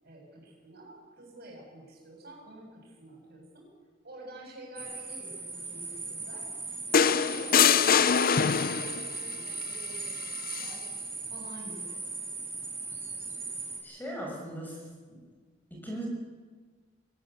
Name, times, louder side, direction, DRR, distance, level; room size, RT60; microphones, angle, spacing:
voice 1, 0.0-3.7 4.0-6.5 6.9-10.8 11.3-12.0, right 1 dB, 55° right, 0 dB, 7.7 m, -49 dB
sound 1, 4.8-13.8, right 3 dB, 15° right, 5.4 m, -38 dB
sound 2, 6.9-9.1 10.5-10.7, left 7 dB, 50° left, 0.6 m, -23 dB
voice 2, 13.8-15.2 15.8-16.1, right 1 dB, 10° left, -2 dB, 6.5 m, -39 dB
23.5 x 18.0 x 8.2 m, 1.4 s
head